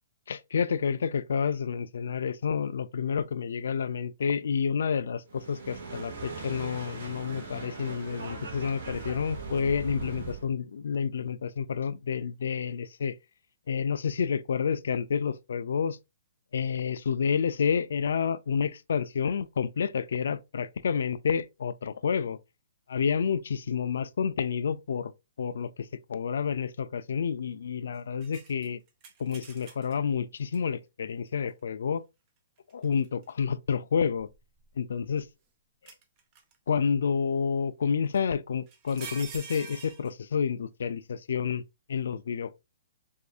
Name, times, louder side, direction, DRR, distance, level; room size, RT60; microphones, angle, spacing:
voice 1, 0.3-13.2 13.7-16.0 16.5-22.4 22.9-25.1 25.4-28.8 29.2-32.0 32.7-34.3 34.8-35.3 36.7-41.6 41.9-42.6, left 6 dB, 70° left, 0.3 m, -29 dB
sound 1, 5.3-10.5, right 4 dB, 65° right, 1.6 m, -39 dB
sound 2, 28.2-30.0 30.5-30.6 32.7-33.3 34.1-35.2 35.9-36.6 38.1-38.2 38.7-40.1, right 6 dB, 25° right, 0.6 m, -46 dB
4.7 x 2.6 x 2.3 m
hypercardioid pair, 170°, 0 cm